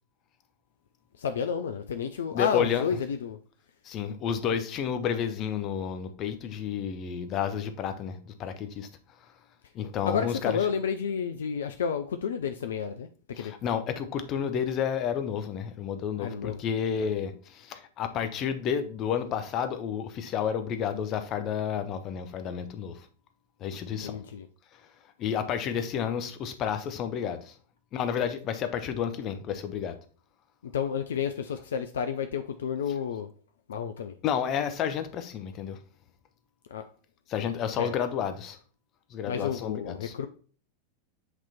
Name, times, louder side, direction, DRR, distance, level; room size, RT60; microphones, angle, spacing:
voice 1, 1.2-3.4 10.1-13.1 13.4-13.5 16.2-16.6 24.0-24.5 30.7-33.3 33.7-34.1 36.7-36.8 37.8-38.0 39.3-40.3, left 7 dB, 65° left, 0.4 m, -31 dB
voice 2, 2.3-2.9 3.8-8.9 9.7-10.7 13.3-23.0 23.6-24.2 25.2-27.5 27.9-29.9 32.9-33.0 34.2-35.8 37.3-38.6 39.1-40.1, left 8 dB, 35° left, 0.8 m, -31 dB
8.0 x 3.0 x 4.2 m
figure-of-eight pair, 90°, 0 cm